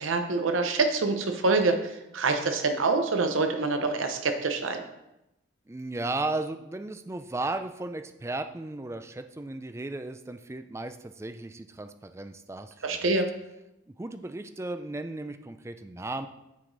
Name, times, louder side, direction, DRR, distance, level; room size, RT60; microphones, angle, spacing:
voice 1, 0.0-4.8 12.8-13.3, right 3 dB, 85° right, 6 dB, 0.7 m, -26 dB
voice 2, 5.7-13.1 14.0-16.3, right 2 dB, 15° right, 9 dB, 0.3 m, -35 dB
9.3 x 4.9 x 3.9 m, 0.91 s
head